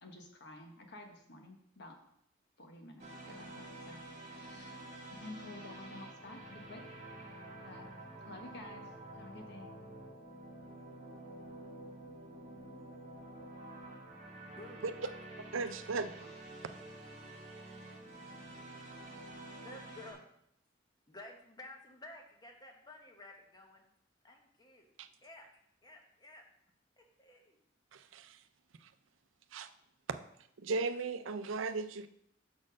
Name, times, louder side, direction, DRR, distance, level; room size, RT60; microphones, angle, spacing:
voice 1, 0.0-2.0 2.6-4.8 5.1-6.9 7.6-7.9 8.2-9.7, left 2 dB, 60° left, 3 dB, 1.2 m, -51 dB
sound 1, 3.0-20.1, right 1 dB, 40° right, 1.9 m, -49 dB
voice 2, 14.5-14.9 19.6-20.2 21.1-23.8 24.2-24.9 25.2-25.5 25.8-26.4 27.0-27.6, left 2 dB, 20° left, 2 dB, 1.1 m, -53 dB
voice 3, 15.5-16.3 25.0-25.1 27.9-28.4 28.8-28.9 29.5-29.7 30.1-30.2 30.6-32.1, right 4 dB, 80° right, 10 dB, 0.5 m, -37 dB
6.0 x 4.3 x 6.3 m, 0.72 s
head